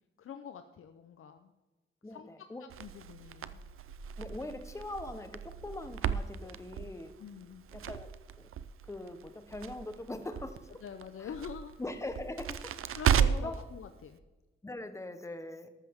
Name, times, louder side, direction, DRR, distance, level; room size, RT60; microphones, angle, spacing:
voice 1, 0.2-1.5 2.1-2.3 2.8-3.6 6.4-6.5 7.2-7.6 10.8-11.7 13.0-14.2, left 7 dB, 85° left, 8 dB, 0.7 m, -45 dB
voice 2, 2.0-2.7 4.2-7.1 7.7-8.1 8.8-10.7 11.2-11.3 11.8-12.8 13.3-13.6 14.6-15.7, left 2 dB, 15° left, 8 dB, 1.0 m, -41 dB
Crackle, 2.7-13.6, right 8 dB, 85° right, 0.6 m, -35 dB
13.5 x 12.0 x 3.6 m, 1.2 s
wide cardioid pair, 130°, 21 cm